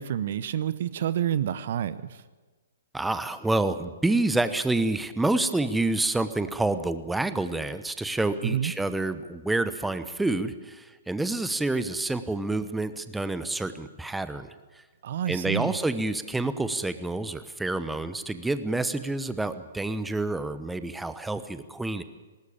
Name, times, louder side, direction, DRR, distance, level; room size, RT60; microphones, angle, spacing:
voice 1, 0.0-2.0 8.5-8.7 15.0-15.7, right 10 dB, 55° right, 16 dB, 0.8 m, -28 dB
voice 2, 2.9-14.5 15.3-22.0, right 2 dB, 5° right, 12 dB, 1.0 m, -28 dB
19.5 x 19.0 x 8.8 m, 1.3 s
figure-of-eight pair, 120°, 0 cm